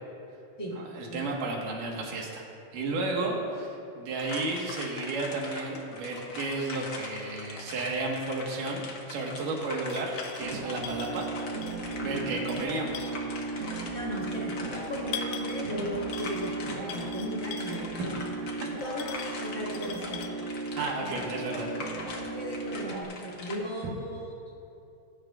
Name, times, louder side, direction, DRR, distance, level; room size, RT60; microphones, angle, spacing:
voice 1, 0.8-2.4 2.7-8.8 9.1-11.7 12.0-13.1 20.8-21.7, right 2 dB, 85° right, -1 dB, 3.1 m, -33 dB
sound 1, 4.2-23.6, left 3 dB, 60° left, 1.3 m, -42 dB
sound 2, 9.2-9.4 9.9-10.5 10.8-12.0 12.3-13.4 14.2-14.3 14.8-15.7 16.1-16.6 16.9-17.9 18.8-20.3, left 8 dB, 85° left, 2.0 m, -42 dB
sound 3, 10.4-23.0, right 3 dB, 60° right, 1.9 m, -36 dB
voice 2, 12.0-12.3 13.9-18.2 18.8-20.2 21.0-24.3, equal, 30° left, -4 dB, 1.2 m, -37 dB
19.5 x 11.0 x 2.4 m, 2.7 s
omnidirectional pair, 3.7 m